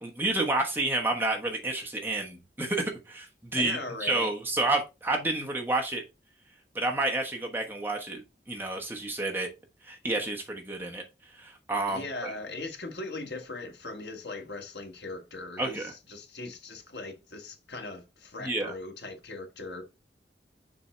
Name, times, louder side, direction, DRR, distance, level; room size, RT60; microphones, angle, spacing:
voice 1, 0.0-6.0 6.7-9.5 9.8-11.0 11.4-12.3 15.6-15.9 18.4-18.7, right 2 dB, 10° right, 1.2 m, -30 dB
voice 2, 3.5-4.3 11.9-19.8, left 2 dB, 75° left, 1.7 m, -39 dB
7.0 x 3.9 x 4.4 m
head